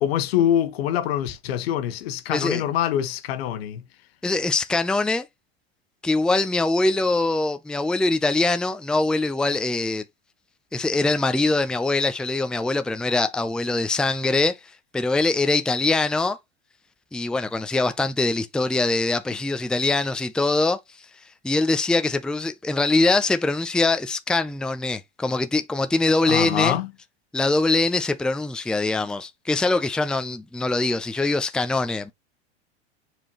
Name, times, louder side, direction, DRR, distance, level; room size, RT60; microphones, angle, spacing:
voice 1, 0.0-3.8 26.2-26.9, left 11 dB, 65° left, 1.2 m, -24 dB
voice 2, 2.3-2.6 4.2-5.3 6.0-10.0 10.7-14.6 14.9-16.4 17.1-20.8 21.4-26.8 27.3-32.1, left 2 dB, ahead, 0.6 m, -23 dB
7.4 x 4.6 x 3.0 m
hypercardioid pair, 90°, 32 cm